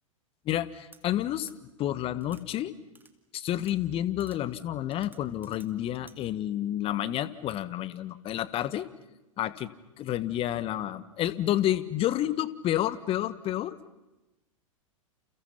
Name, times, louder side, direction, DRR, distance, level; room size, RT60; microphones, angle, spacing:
voice 1, 0.4-1.5 1.8-2.7 3.3-8.9 9.4-9.7 10.0-13.8, left 12 dB, 35° left, 16 dB, 1.5 m, -30 dB
sound 1, 0.9-1.0 1.5-1.6 2.2-2.4 2.9-3.1 3.6-3.8 4.2-4.4 4.9-5.7 6.1-6.2, right 4 dB, 10° right, 2.2 m, -55 dB
30.0 x 30.0 x 5.8 m, 1.0 s
figure-of-eight pair, 95°, 18 cm